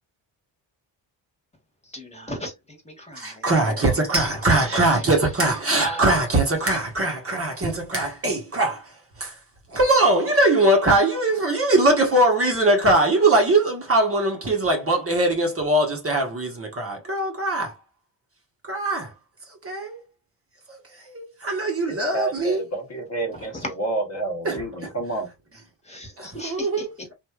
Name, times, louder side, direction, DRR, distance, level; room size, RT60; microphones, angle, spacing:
voice 1, 1.9-2.5 2.8-3.4 4.5-5.0 5.7-6.2 6.7-6.8 23.6-23.7 25.9-26.9, equal, 15° left, 1.3 m, -35 dB
voice 2, 3.2-8.9 9.2-9.4 9.7-17.7 18.7-19.1 19.6-20.0 20.7-20.8 21.0-22.6 24.4-24.6 26.2-26.9, right 2 dB, 30° right, 1.1 m, -21 dB
voice 3, 21.9-25.3, right 2 dB, 35° left, 1.0 m, -29 dB
3.1 x 2.6 x 2.4 m
cardioid pair, 85°, 46 cm